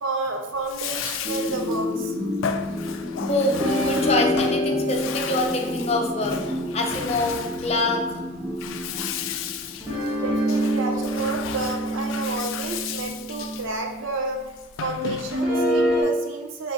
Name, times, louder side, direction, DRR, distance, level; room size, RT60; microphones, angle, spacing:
voice 1, 0.0-2.1 10.2-14.4 14.8-16.7, right 3 dB, 90° right, 3 dB, 0.7 m, -30 dB
Bathtub (filling or washing), 0.5-15.7, left 8 dB, 90° left, 0.3 m, -35 dB
sound 1, 1.2-10.0, left 1 dB, 45° right, 1.3 m, -31 dB
voice 2, 3.3-6.3 6.7-8.2, left 2 dB, 30° left, 2 dB, 0.5 m, -25 dB
sound 2, 3.6-8.2 9.8-14.0 15.3-16.0, equal, 5° right, 1.2 m, -27 dB
4.8 x 2.6 x 3.9 m, 1.1 s
head